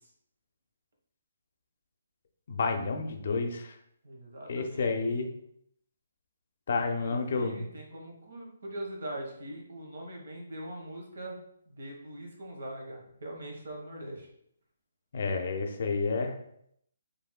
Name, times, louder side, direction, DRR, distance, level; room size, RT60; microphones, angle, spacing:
voice 1, 2.5-3.7 4.5-5.3 6.7-7.6 15.1-16.4, left 4 dB, 50° left, 4 dB, 0.6 m, -30 dB
voice 2, 4.0-5.0 6.7-11.4 11.7-14.3, right 1 dB, 60° right, 0 dB, 1.3 m, -42 dB
5.6 x 3.4 x 2.2 m, 0.71 s
figure-of-eight pair, 135°, 0 cm